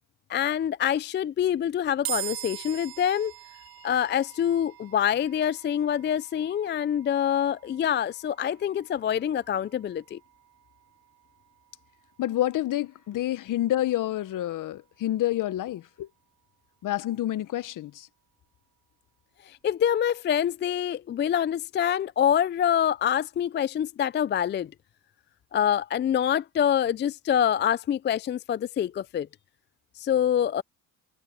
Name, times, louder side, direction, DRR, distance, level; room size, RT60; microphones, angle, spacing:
voice 1, 0.3-3.3 3.8-10.2 19.5-24.7 25.5-29.3 30.0-30.6, left 9 dB, 30° left, 0.4 m, -26 dB
sound 1, 2.1-15.4, right 15 dB, 70° right, 2.9 m, -44 dB
voice 2, 12.2-16.1 16.8-18.1, left 13 dB, 55° left, 1.0 m, -28 dB
supercardioid pair, 75°, 38 cm